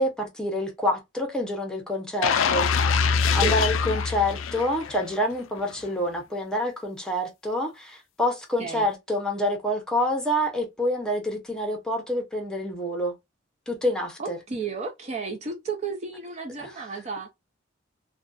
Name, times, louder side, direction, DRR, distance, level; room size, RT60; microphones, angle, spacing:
voice 1, 0.0-13.1 13.7-14.4 16.6-16.7, left 1 dB, 5° left, 0.7 m, -27 dB
sound 1, 2.2-5.2 5.6-5.7, left 6 dB, 85° left, 0.3 m, -24 dB
voice 2, 14.2-17.3, right 5 dB, 35° right, 0.4 m, -33 dB
2.5 x 2.2 x 2.3 m
head